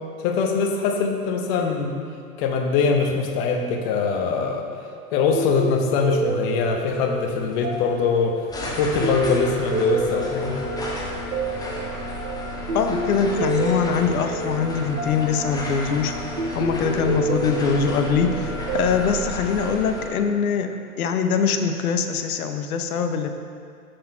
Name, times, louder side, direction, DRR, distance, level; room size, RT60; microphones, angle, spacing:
voice 1, 0.2-2.0 2.4-4.7 5.1-10.6, left 5 dB, 45° left, 3 dB, 1.0 m, -23 dB
sound 1, 5.3-20.1, right 2 dB, 75° right, 1.2 m, -29 dB
sound 2, 6.4-20.1, left 1 dB, 10° left, 0.9 m, -33 dB
voice 2, 12.7-16.1 16.5-23.3, left 6 dB, 75° left, 7 dB, 0.8 m, -23 dB
6.6 x 6.0 x 4.3 m, 2.3 s
hypercardioid pair, 105°, 44 cm